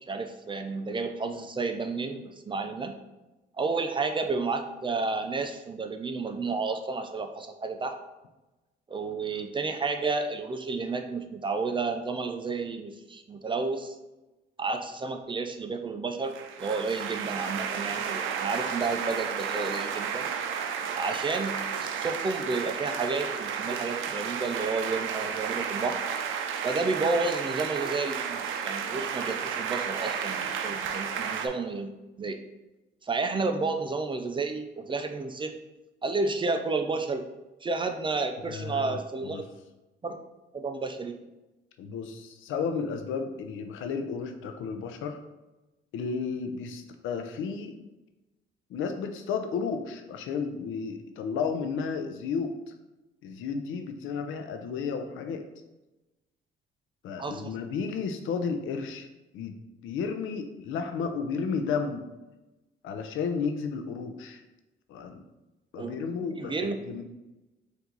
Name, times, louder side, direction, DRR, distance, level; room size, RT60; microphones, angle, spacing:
voice 1, 0.0-3.0 3.6-7.9 8.9-13.9 14.6-20.3 21.0-26.0 26.6-31.9 32.2-32.4 33.0-35.5 36.0-37.2 37.6-39.4 40.0-40.2 40.5-41.2 57.2-57.5 65.8-66.8, right 3 dB, 25° right, 6 dB, 0.5 m, -31 dB
sound 1, 16.3-31.5, right 7 dB, 80° right, 0.5 m, -32 dB
voice 2, 38.5-39.0 39.3-39.4 41.8-45.2 45.9-47.7 48.7-52.5 53.2-55.5 57.0-59.1 59.3-59.6 59.8-62.1 62.8-64.4 64.9-65.2 65.7-67.0, left 5 dB, 85° left, 7 dB, 0.5 m, -32 dB
4.5 x 2.7 x 3.9 m, 1.0 s
cardioid pair, 90°, 20 cm